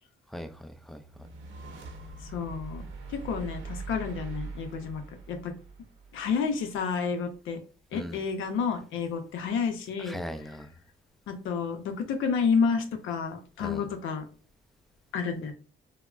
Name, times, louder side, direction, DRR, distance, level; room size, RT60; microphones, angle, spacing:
voice 1, 0.3-1.0 7.9-8.2 10.0-10.7 13.6-13.9, equal, ahead, 0.3 m, -39 dB
sound 1, 1.1-6.4, right 4 dB, 90° right, 0.7 m, -42 dB
voice 2, 2.3-2.8 3.1-5.0 5.3-5.5 6.1-7.6 7.9-10.2 11.3-14.2 15.1-15.5, left 5 dB, 80° left, 0.6 m, -30 dB
3.4 x 2.0 x 2.3 m
cardioid pair, 90°, 20 cm